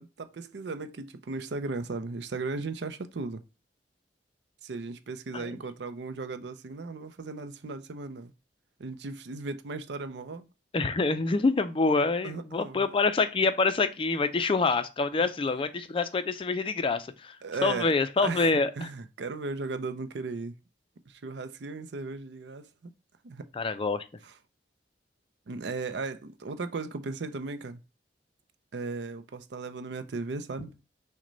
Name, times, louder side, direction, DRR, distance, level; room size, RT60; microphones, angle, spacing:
voice 1, 0.0-3.4 4.6-8.3 8.8-10.5 12.2-12.9 15.2-15.3 17.4-20.6 21.1-22.9 23.2-23.5 24.2-24.3 25.5-27.8 28.7-30.7, right 3 dB, 70° right, 0.5 m, -36 dB
voice 2, 10.7-17.4 17.6-18.9 23.5-24.1, left 3 dB, 30° left, 0.4 m, -26 dB
6.1 x 2.2 x 3.9 m
head